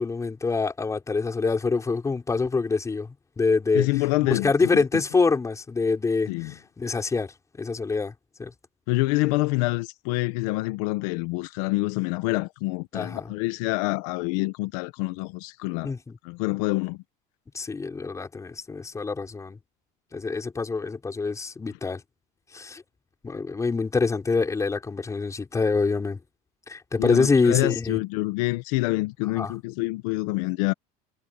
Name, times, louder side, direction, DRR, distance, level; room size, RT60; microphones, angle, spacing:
voice 1, 0.0-3.9 4.2-8.1 8.4-8.5 12.9-13.3 15.8-16.2 17.5-19.6 20.1-22.0 22.5-22.8 23.2-26.2 26.7-28.0 29.4-29.5, left 4 dB, 15° left, 5.8 m, -25 dB
voice 2, 3.7-4.8 6.3-6.5 8.9-15.9 16.2-17.0 27.0-30.7, left 22 dB, 80° left, 1.1 m, -26 dB
supercardioid pair, 125°, 18 cm